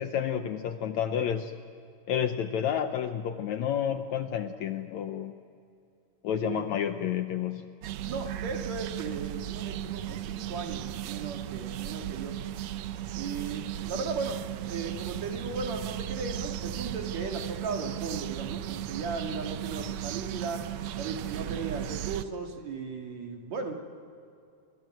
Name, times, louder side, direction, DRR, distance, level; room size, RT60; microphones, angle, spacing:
voice 1, 0.0-1.5 2.1-5.3 6.2-7.7, left 9 dB, 70° left, 8 dB, 1.9 m, -30 dB
voice 2, 6.4-6.8 8.0-12.3 13.1-14.4 14.7-20.6 21.0-23.7, right 4 dB, 55° right, 3 dB, 3.2 m, -36 dB
sound 1, 7.8-22.2, right 12 dB, 80° right, 1.5 m, -36 dB
29.5 x 23.0 x 7.8 m, 2.5 s
omnidirectional pair, 3.9 m